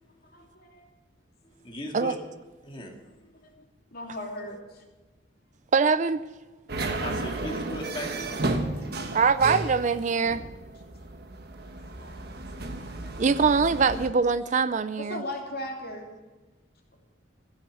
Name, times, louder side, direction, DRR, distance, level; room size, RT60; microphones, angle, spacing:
voice 1, 0.3-0.9 3.9-4.6 12.0-12.2 12.6-13.2 15.0-16.1, left 1 dB, 50° left, 0 dB, 2.9 m, -37 dB
voice 2, 1.5-2.2 2.6-3.5 7.0-8.5, equal, 25° left, 0 dB, 2.2 m, -38 dB
voice 3, 5.7-6.2 9.1-10.4 13.2-15.2, right 5 dB, 40° right, 14 dB, 0.4 m, -23 dB
sound 1, 6.7-14.1, right 2 dB, 55° right, 1.3 m, -33 dB
15.5 x 7.2 x 9.1 m, 1.2 s
head